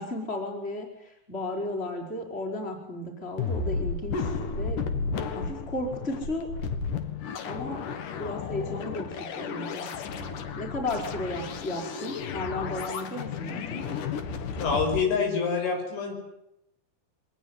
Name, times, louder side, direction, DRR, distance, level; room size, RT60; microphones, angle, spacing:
voice 1, 0.0-4.8 5.2-6.5 7.4-14.0, left 1 dB, 10° left, 2 dB, 5.1 m, -35 dB
sound 1, 3.4-15.0, left 5 dB, 55° left, 2.7 m, -33 dB
voice 2, 14.5-16.1, left 5 dB, 75° left, 3 dB, 8.3 m, -26 dB
24.0 x 20.0 x 9.7 m, 0.83 s
omnidirectional pair, 5.5 m